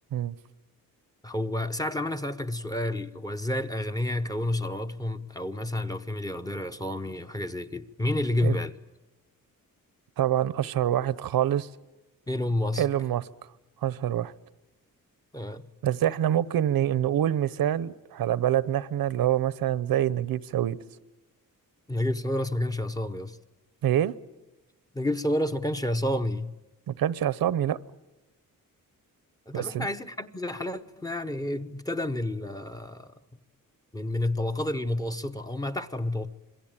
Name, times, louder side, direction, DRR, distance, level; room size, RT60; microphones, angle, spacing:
voice 1, 1.2-8.7 12.3-12.9 15.3-15.7 21.9-23.4 24.9-26.5 29.5-33.1 33.9-36.3, left 1 dB, 10° left, 0.8 m, -30 dB
voice 2, 10.2-11.7 12.8-13.2 13.8-14.3 15.8-20.8 23.8-24.1 26.9-27.8 29.5-29.9, right 11 dB, 80° right, 0.9 m, -26 dB
27.0 x 22.0 x 8.8 m
wide cardioid pair, 175°, 35 cm